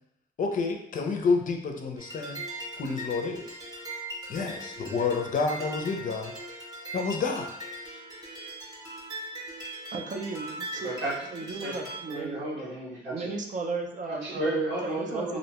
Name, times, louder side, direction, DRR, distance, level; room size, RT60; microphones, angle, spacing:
voice 1, 0.4-2.4 2.8-3.6 4.3-6.3 6.9-7.5, left 4 dB, 40° left, 3 dB, 0.5 m, -29 dB
sound 1, 2.0-12.2, right 1 dB, 20° right, 0.8 m, -40 dB
voice 2, 9.9-11.0 11.3-12.4 13.1-14.5 14.8-15.4, right 3 dB, 40° right, 2 dB, 0.4 m, -35 dB
voice 3, 10.8-11.1 11.6-11.7 12.1-13.3 14.1-15.4, right 2 dB, 85° right, -9 dB, 1.0 m, -32 dB
2.6 x 2.2 x 2.9 m, 0.74 s
cardioid pair, 90°, 20 cm